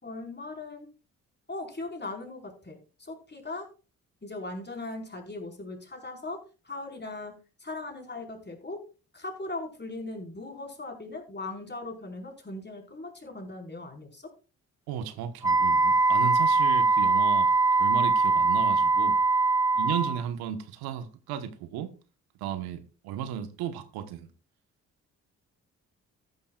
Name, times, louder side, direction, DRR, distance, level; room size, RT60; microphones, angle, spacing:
voice 1, 0.0-0.9 1.5-3.7 4.2-8.8 9.1-14.3, left 2 dB, 25° left, 4.8 m, -39 dB
voice 2, 14.9-17.5 17.8-19.2 19.7-21.9 22.4-24.3, right 9 dB, 80° right, 1.3 m, -34 dB
Wind instrument woodwind instrument, 15.4-20.2, right 3 dB, 10° right, 0.7 m, -22 dB
14.5 x 11.0 x 2.4 m
hypercardioid pair, 45°, 38 cm